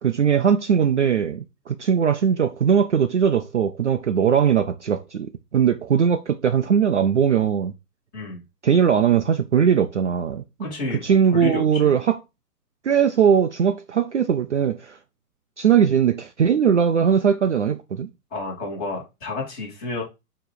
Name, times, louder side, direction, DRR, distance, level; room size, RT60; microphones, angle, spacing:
voice 1, 0.0-7.7 8.6-10.4 11.0-12.2 12.8-15.0 15.6-18.1, right 7 dB, 50° right, 0.5 m, -20 dB
voice 2, 10.6-12.0 18.3-20.0, left 2 dB, 15° left, 2.5 m, -30 dB
7.1 x 3.1 x 4.6 m
hypercardioid pair, 165°, 48 cm